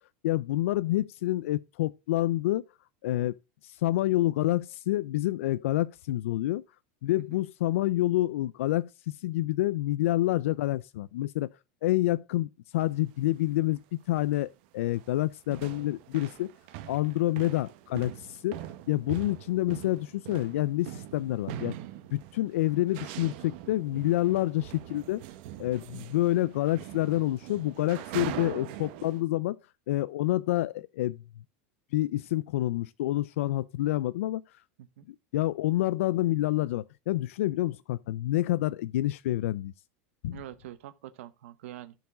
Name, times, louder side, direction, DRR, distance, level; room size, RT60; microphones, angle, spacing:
voice 1, 0.2-2.6 3.0-3.3 3.6-6.6 7.0-11.5 11.8-13.8 14.1-16.5 16.9-18.6 18.9-21.7 22.1-25.2 25.6-29.6 29.9-31.2 31.9-34.4 35.1-39.7 40.2-40.4, left 16 dB, 90° left, 0.4 m, -28 dB
sound 1, 12.8-13.0 13.8-13.9 14.1-14.5 14.8-29.2, right 13 dB, 50° right, 1.1 m, -42 dB
voice 2, 40.3-42.0, right 13 dB, 75° right, 1.0 m, -45 dB
13.0 x 4.7 x 4.8 m
supercardioid pair, 170°, 7 cm